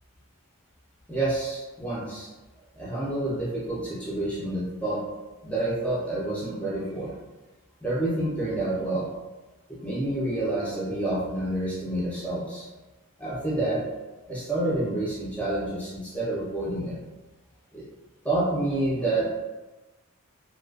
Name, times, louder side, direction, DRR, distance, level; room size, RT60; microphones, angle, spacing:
voice 1, 1.1-2.3 2.8-5.0 5.4-7.1 7.8-9.1 9.8-12.7 13.2-13.8 14.3-17.0 17.7-17.8 18.2-19.3, right 1 dB, 5° left, -7 dB, 0.6 m, -28 dB
2.4 x 2.4 x 2.3 m, 1.1 s
head